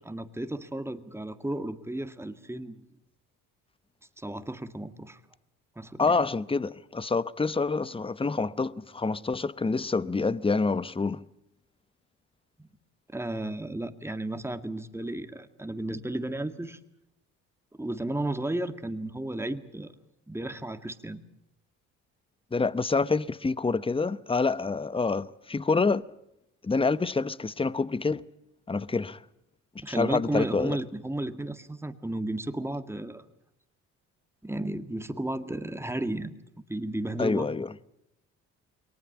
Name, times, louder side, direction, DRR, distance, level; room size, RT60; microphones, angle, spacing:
voice 1, 0.1-2.8 4.2-5.2 5.8-6.3 12.6-12.7 13.1-16.8 17.7-19.9 20.3-21.2 29.8-33.3 34.4-36.4 36.7-37.5, right 1 dB, 5° right, 1.8 m, -33 dB
voice 2, 6.0-11.2 22.5-26.0 26.6-28.2 28.7-29.2 29.9-30.8 37.2-37.7, left 4 dB, 15° left, 0.8 m, -27 dB
22.5 x 19.0 x 8.5 m
supercardioid pair, 60°, 36 cm